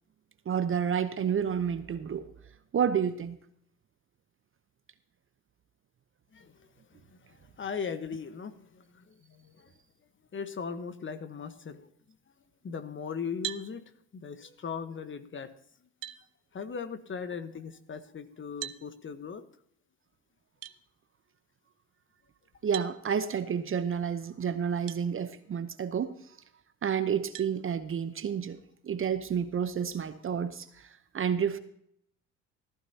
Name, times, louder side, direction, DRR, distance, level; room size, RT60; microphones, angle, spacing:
voice 1, 0.5-2.3 2.7-3.4 22.6-26.1 26.8-28.6 28.8-31.6, right 7 dB, 35° right, 12 dB, 0.9 m, -30 dB
voice 2, 6.3-7.0 7.3-9.7 10.3-11.9 12.6-15.5 16.5-19.4, left 6 dB, 30° left, 10 dB, 1.3 m, -39 dB
Glass bottle, 13.4-13.7 15.4-15.5 16.0-16.2 18.6-18.8 20.6-20.8 22.7-23.0 24.9-25.0 25.7-25.8 27.3-27.5, right 15 dB, 60° right, 0.7 m, -38 dB
15.0 x 14.0 x 2.9 m, 0.69 s
hypercardioid pair, 60°, 38 cm